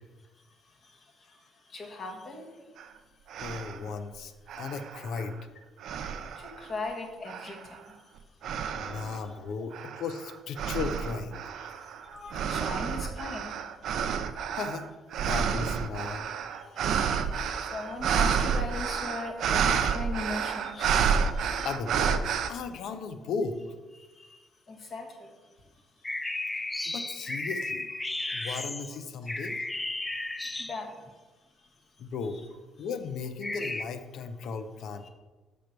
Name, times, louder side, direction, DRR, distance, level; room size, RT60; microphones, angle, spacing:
voice 1, 0.4-2.6 6.4-8.2 8.7-9.1 11.7-13.6 13.9-14.0 16.5-21.7 24.0-24.4 24.7-25.3 25.7-26.5 26.7-26.8 30.6-31.2 31.6-31.7 32.3-32.4 35.0-35.1, left 2 dB, 50° left, 1 dB, 1.7 m, -40 dB
sound 1, 2.8-2.9 3.3-3.9 4.5-5.4 5.8-6.7 7.3-7.8 8.4-9.2 9.7-22.5, right 7 dB, 70° right, 0.5 m, -30 dB
voice 2, 3.4-5.4 6.0-6.1 8.8-11.7 14.6-14.9 15.2-16.3 21.6-23.6 26.8-27.9 28.3-29.7 32.0-32.4 32.8-35.1, left 5 dB, 70° left, 10 dB, 0.6 m, -36 dB
sound 2, 26.0-31.1 33.4-33.8, left 2 dB, 15° left, 0.4 m, -34 dB
6.3 x 5.2 x 4.5 m, 1.2 s
supercardioid pair, 65°, 0 cm